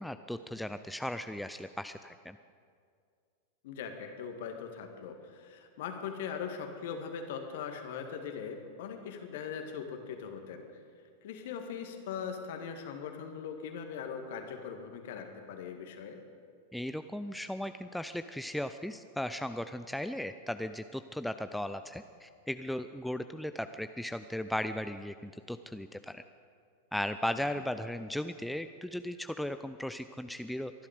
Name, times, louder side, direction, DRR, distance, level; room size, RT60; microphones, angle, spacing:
voice 1, 0.0-2.4 16.7-26.2 26.9-30.7, left 1 dB, ahead, 10 dB, 0.5 m, -37 dB
voice 2, 3.6-10.6 11.2-16.2 27.4-27.5, left 7 dB, 55° left, 5 dB, 1.9 m, -40 dB
24.0 x 11.5 x 5.1 m, 2.2 s
figure-of-eight pair, 90°, 0 cm